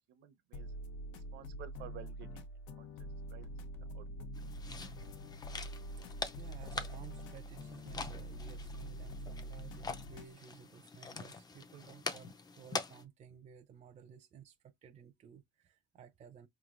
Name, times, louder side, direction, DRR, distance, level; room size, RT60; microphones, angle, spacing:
voice 1, 0.1-0.7 1.1-2.4 2.8-2.9 3.3-4.3, right 9 dB, 60° right, 0.9 m, -53 dB
sound 1, 0.5-10.3, equal, 90° left, 1.0 m, -45 dB
sound 2, 4.3-13.0, left 4 dB, 20° left, 0.5 m, -45 dB
voice 2, 6.0-16.5, right 8 dB, 35° right, 0.6 m, -56 dB
5.1 x 3.1 x 2.5 m
cardioid pair, 130°, 20 cm